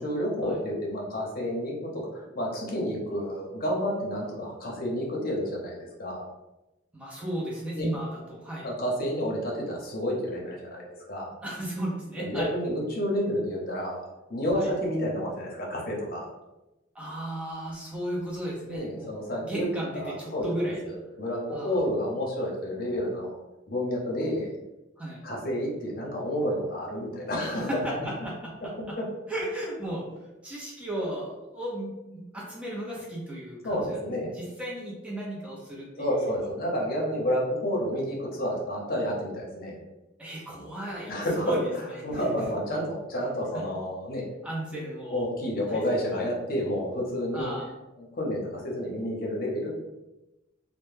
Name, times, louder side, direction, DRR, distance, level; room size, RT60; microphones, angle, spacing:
voice 1, 0.0-6.3 7.7-7.9 8.6-11.3 12.2-16.3 18.7-19.7 19.9-23.3 23.7-24.5 25.2-27.8 29.0-29.1 33.6-34.3 36.0-39.8 41.1-41.5 42.0-44.2 45.1-47.5 48.2-49.7, equal, 50° left, -2 dB, 0.7 m, -30 dB
voice 2, 6.9-8.7 11.4-12.5 14.5-14.7 16.9-19.1 19.4-20.8 21.5-21.8 25.0-25.2 27.4-29.0 29.3-30.1 30.4-36.3 40.2-41.1 41.4-42.2 43.5-43.6 44.4-45.2 45.7-45.8 47.3-47.7, right 1 dB, 5° right, -4 dB, 0.6 m, -35 dB
2.1 x 2.1 x 3.2 m, 0.99 s
head